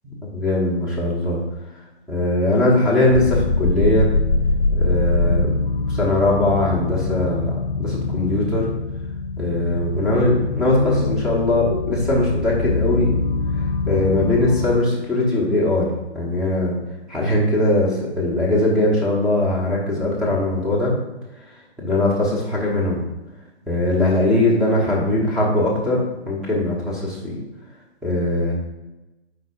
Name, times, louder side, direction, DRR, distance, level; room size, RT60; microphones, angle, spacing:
voice 1, 0.3-1.4 2.1-4.1 4.7-5.5 5.9-8.7 9.4-13.1 13.6-15.9 16.1-16.8 17.1-20.9 21.8-23.0 23.7-27.4 28.0-28.5, left 1 dB, ahead, -6 dB, 1.1 m, -20 dB
sound 1, 3.1-14.8, left 3 dB, 55° left, 0.7 m, -23 dB
7.9 x 4.8 x 2.6 m, 1.0 s
figure-of-eight pair, 135°, 34 cm